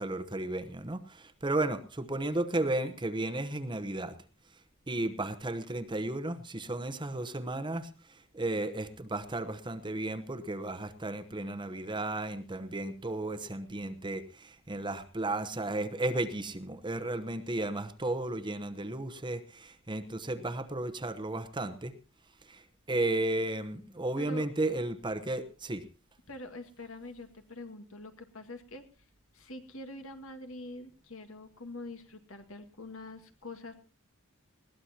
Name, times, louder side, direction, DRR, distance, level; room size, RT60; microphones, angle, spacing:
voice 1, 0.0-4.2 4.9-21.9 22.4-25.8, right 2 dB, 20° right, 10 dB, 1.0 m, -34 dB
voice 2, 24.2-24.5 26.3-28.8 29.3-33.7, left 2 dB, 70° left, 7 dB, 2.0 m, -45 dB
20.5 x 17.0 x 2.9 m, 0.33 s
head